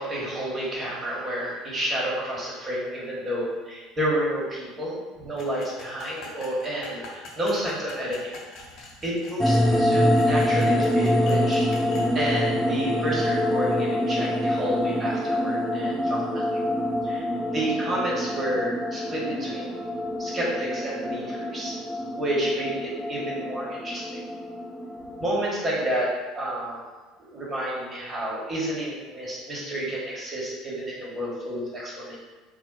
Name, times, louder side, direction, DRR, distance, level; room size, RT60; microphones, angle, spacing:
voice 1, 0.0-8.3 9.0-11.7 12.1-16.6 17.0-17.2 17.5-19.7 20.2-21.8 22.2-24.2 25.2-26.8 27.3-32.2, right 1 dB, 25° right, -5 dB, 1.3 m, -30 dB
sound 1, 5.4-12.1, left 3 dB, 55° left, 0.8 m, -44 dB
sound 2, 9.4-25.3, left 1 dB, 10° left, 0.6 m, -25 dB
3.5 x 2.2 x 3.9 m, 1.3 s
figure-of-eight pair, 65°, 0 cm